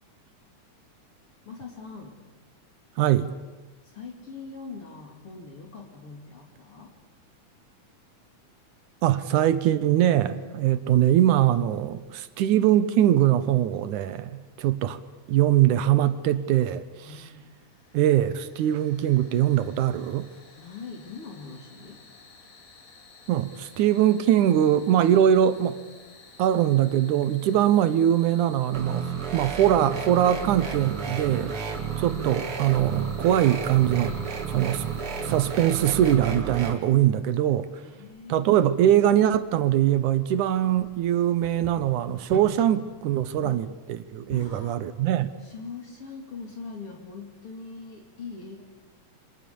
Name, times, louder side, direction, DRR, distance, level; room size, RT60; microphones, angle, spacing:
voice 1, 1.5-2.2 3.8-6.9 17.0-17.5 20.6-22.0 37.8-38.7 43.4-43.6 44.3-44.8 45.4-48.6, left 4 dB, 45° left, 3.6 m, -42 dB
voice 2, 3.0-3.3 9.0-15.0 15.3-17.1 17.9-20.3 23.3-25.8 26.4-31.6 32.0-34.2 34.5-34.8 35.2-37.7 38.3-45.3, right 11 dB, 80° right, 2.4 m, -22 dB
sound 1, 17.4-36.2, left 4 dB, 85° left, 5.0 m, -52 dB
sound 2, 28.7-36.7, right 6 dB, 50° right, 2.8 m, -32 dB
sound 3, 38.1-44.7, equal, 10° left, 7.1 m, -49 dB
28.0 x 24.5 x 7.0 m
omnidirectional pair, 3.6 m